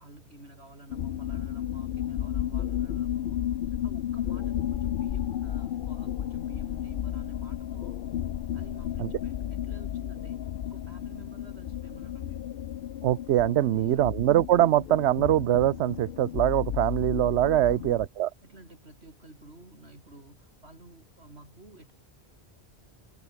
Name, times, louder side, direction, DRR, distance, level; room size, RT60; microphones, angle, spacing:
voice 1, 0.0-3.5 3.8-8.0 8.5-12.5 13.6-14.1 17.5-17.9 18.4-21.9, right 2 dB, 75° right, 5.7 m, -51 dB
sound 1, 0.9-18.1, left 11 dB, 60° left, 0.7 m, -33 dB
voice 2, 13.0-18.3, right 13 dB, 90° right, 0.9 m, -23 dB
omnidirectional pair, 1.1 m